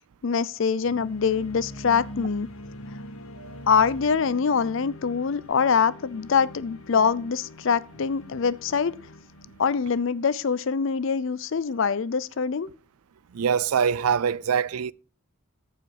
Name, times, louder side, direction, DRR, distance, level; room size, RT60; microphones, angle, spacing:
voice 1, 0.2-2.5 3.7-8.9 9.6-12.7, left 6 dB, 60° left, 0.5 m, -24 dB
sound 1, 0.8-10.8, left 1 dB, 80° left, 1.1 m, -43 dB
voice 2, 13.3-14.9, right 7 dB, 90° right, 0.4 m, -24 dB
14.5 x 4.9 x 4.8 m
head